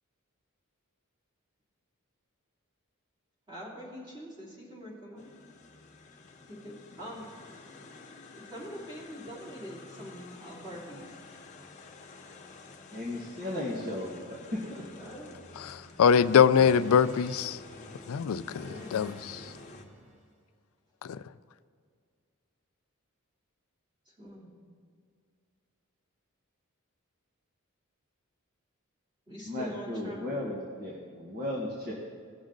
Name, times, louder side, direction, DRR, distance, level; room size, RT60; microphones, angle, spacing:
voice 1, 3.5-5.3 6.5-7.3 8.3-11.2 15.0-15.3 18.6-19.0 24.1-24.5 29.3-30.2, equal, 20° right, -6 dB, 2.9 m, -44 dB
sound 1, 5.2-19.8, left 3 dB, 35° left, 1.0 m, -49 dB
voice 2, 12.9-14.8 29.4-31.9, left 1 dB, 45° right, -4 dB, 1.5 m, -35 dB
sound 2, 15.5-20.3, equal, 80° right, 1.9 m, -54 dB
voice 3, 15.6-17.6 18.1-19.5 21.0-21.2, left 7 dB, 80° left, 15 dB, 0.4 m, -24 dB
18.5 x 6.2 x 3.8 m, 2.1 s
head